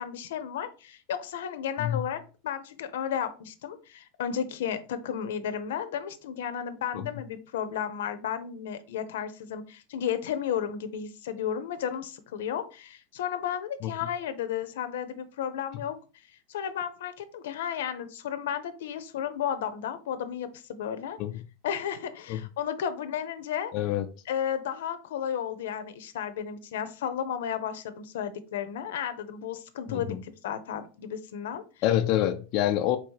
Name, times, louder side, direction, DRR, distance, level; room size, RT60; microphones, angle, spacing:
voice 1, 0.0-16.0 16.5-21.2 21.6-23.7 24.3-31.6, left 8 dB, 90° left, 0.7 m, -33 dB
voice 2, 23.7-24.1 29.9-30.2 31.8-33.0, left 12 dB, 35° left, 0.3 m, -26 dB
4.1 x 2.8 x 4.6 m
supercardioid pair, 175°, 0 cm